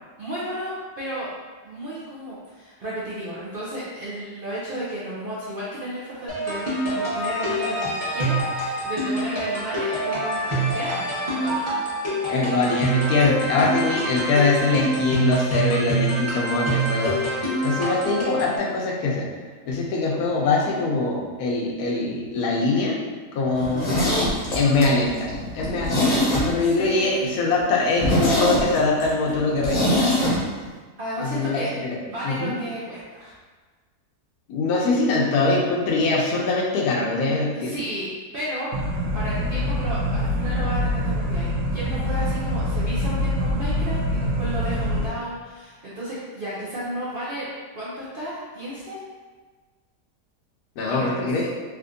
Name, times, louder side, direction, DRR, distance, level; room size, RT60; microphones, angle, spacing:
voice 1, 0.2-1.3 1.6-11.0 11.4-11.8 23.5-23.9 26.6-27.3 31.0-31.7 32.0-33.3 37.5-47.5 47.7-49.0 50.8-51.3, right 1 dB, 65° right, -9 dB, 0.5 m, -33 dB
sound 1, 6.3-18.6, right 1 dB, 10° right, 0.8 m, -26 dB
voice 2, 12.3-17.2 17.6-19.3 19.7-23.0 23.3-23.9 24.6-30.2 31.2-31.7 32.2-32.5 34.5-37.7 50.8-51.5, left 3 dB, 75° left, -2 dB, 1.1 m, -23 dB
Zipper (clothing), 23.6-26.8 27.1-27.2 27.6-27.7 28.0-30.4 30.6-30.7, left 1 dB, 35° left, 0.8 m, -23 dB
sound 2, 38.7-45.1, left 1 dB, 85° right, 1.2 m, -25 dB
3.4 x 2.9 x 2.5 m, 1.4 s
omnidirectional pair, 1.7 m